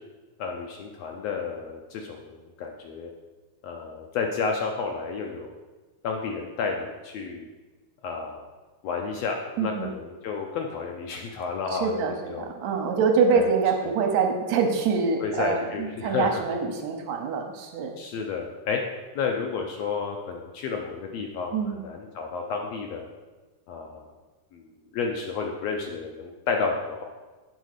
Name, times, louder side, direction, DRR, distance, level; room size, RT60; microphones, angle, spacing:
voice 1, 0.4-3.1 3.6-5.5 6.0-7.5 8.0-8.4 8.8-12.5 13.3-13.5 15.2-16.4 18.0-18.8 19.1-21.5 21.8-23.1 23.7-24.0 24.5-24.6 24.9-27.0, left 5 dB, 75° left, 1 dB, 1.6 m, -31 dB
voice 2, 9.6-9.9 11.7-17.9 21.5-21.8, right 5 dB, 75° right, 3 dB, 2.0 m, -25 dB
8.2 x 4.0 x 6.5 m, 1.2 s
omnidirectional pair, 3.5 m